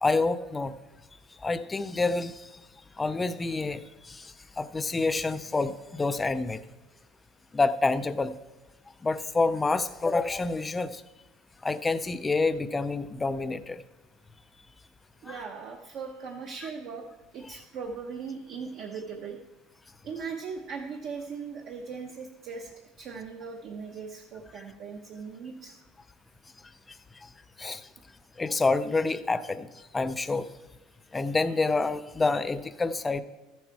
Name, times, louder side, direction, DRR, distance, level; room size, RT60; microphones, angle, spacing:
voice 1, 0.0-0.7 1.4-2.5 3.0-6.6 7.5-8.3 9.0-11.0 11.6-13.8 15.3-15.4 27.2-27.3 27.6-27.9 28.4-29.7 29.9-30.5 31.1-33.2, left 3 dB, 10° left, 12 dB, 0.4 m, -28 dB
voice 2, 15.2-17.0 17.3-19.4 20.0-22.7 23.0-25.7, right 5 dB, 45° right, 1 dB, 0.8 m, -39 dB
13.5 x 7.3 x 4.6 m, 1.1 s
cardioid pair, 160°, 0 cm